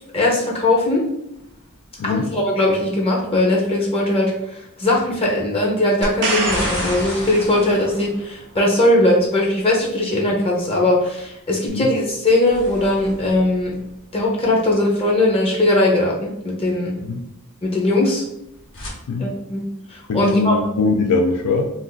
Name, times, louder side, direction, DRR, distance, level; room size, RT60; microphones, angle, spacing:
voice 1, 0.1-1.0 2.0-13.7 14.1-16.9 17.6-18.2 19.2-19.6 19.9-20.6, left 1 dB, 25° left, -2 dB, 0.6 m, -19 dB
sound 1, 1.3-2.3 6.0-9.3 12.1-14.6 18.3-18.9, left 1 dB, 60° left, 1.0 m, -34 dB
voice 2, 2.0-2.3 11.7-11.9 17.0-17.2 19.1-19.3 20.1-21.7, left 3 dB, 85° left, 1 dB, 0.4 m, -21 dB
sound 2, 6.0-8.0 11.7-11.8, right 2 dB, 50° right, 0.6 m, -26 dB
2.5 x 2.4 x 3.8 m, 0.81 s
head